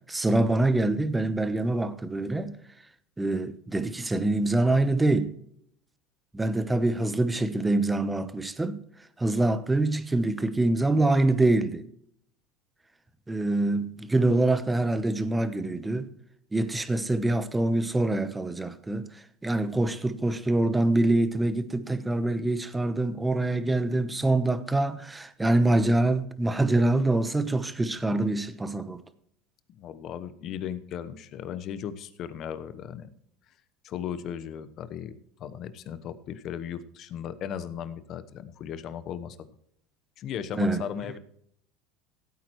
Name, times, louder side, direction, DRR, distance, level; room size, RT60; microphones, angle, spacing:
voice 1, 0.1-2.6 3.2-5.3 6.3-8.8 9.2-11.8 13.3-16.1 16.5-19.1 19.4-29.0 40.6-40.8, right 2 dB, 10° right, 1.0 m, -25 dB
voice 2, 29.7-33.1 33.8-39.4 40.2-41.2, left 9 dB, 50° left, 1.0 m, -36 dB
16.0 x 8.9 x 3.1 m
supercardioid pair, 105°, 0 cm